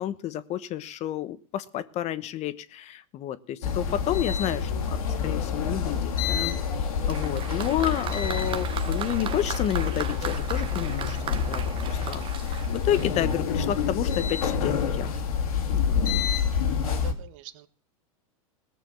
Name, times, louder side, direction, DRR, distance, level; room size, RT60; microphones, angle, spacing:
voice 1, 0.0-15.1 15.7-16.0, left 11 dB, 40° left, 15 dB, 1.1 m, -31 dB
sound 1, 3.6-17.1, left 6 dB, 80° left, 2.7 m, -27 dB
Applause, 7.1-13.5 14.4-14.5, right 9 dB, 30° right, 1.2 m, -37 dB
voice 2, 16.7-17.7, right 13 dB, 65° right, 11 dB, 1.4 m, -44 dB
18.5 x 6.8 x 7.6 m, 0.43 s
hypercardioid pair, 115°, 18 cm